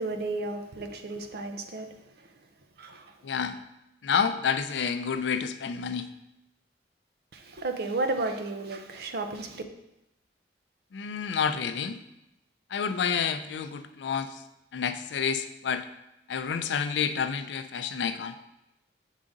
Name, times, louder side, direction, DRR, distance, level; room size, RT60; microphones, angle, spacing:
voice 1, 0.0-2.3 2.8-3.1 7.3-9.6, right 2 dB, 60° right, 0.6 m, -33 dB
voice 2, 3.2-3.6 4.0-6.1 10.9-12.0 12.7-14.4 14.7-15.8 16.3-18.3, left 6 dB, 75° left, 0.4 m, -29 dB
7.2 x 3.7 x 3.8 m
head